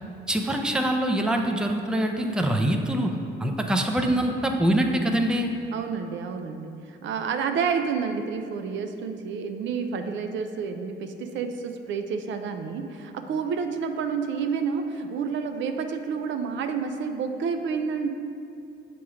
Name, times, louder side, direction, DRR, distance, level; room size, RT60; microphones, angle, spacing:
voice 1, 0.3-3.1 3.4-5.5, right 1 dB, 5° right, 3 dB, 0.4 m, -24 dB
voice 2, 5.7-18.1, right 6 dB, 70° right, 7 dB, 0.4 m, -29 dB
7.1 x 3.0 x 4.8 m, 2.5 s
cardioid pair, 90°, 20 cm